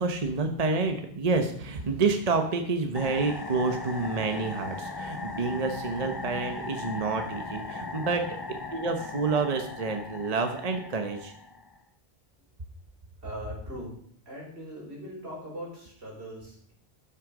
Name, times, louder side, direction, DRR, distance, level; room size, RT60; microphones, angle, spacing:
voice 1, 0.0-8.2 8.7-11.3, right 4 dB, 40° right, 5 dB, 1.0 m, -28 dB
sound 1, 2.9-11.8, left 2 dB, 25° left, 0.9 m, -38 dB
voice 2, 13.2-13.9 14.3-16.7, equal, 85° right, -3 dB, 4.3 m, -40 dB
12.5 x 6.4 x 5.0 m, 0.62 s
omnidirectional pair, 1.1 m